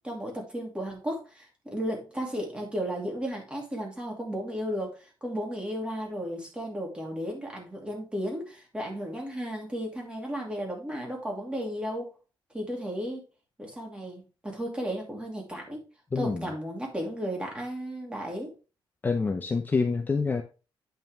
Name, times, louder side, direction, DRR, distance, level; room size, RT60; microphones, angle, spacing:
voice 1, 0.0-12.1 12.5-13.2 13.6-15.8 16.2-18.5, equal, 10° right, 0 dB, 2.5 m, -34 dB
voice 2, 16.1-16.5 19.0-20.4, left 4 dB, 20° left, 6 dB, 0.6 m, -27 dB
8.9 x 5.5 x 3.4 m, 0.32 s
wide cardioid pair, 160°, 9 cm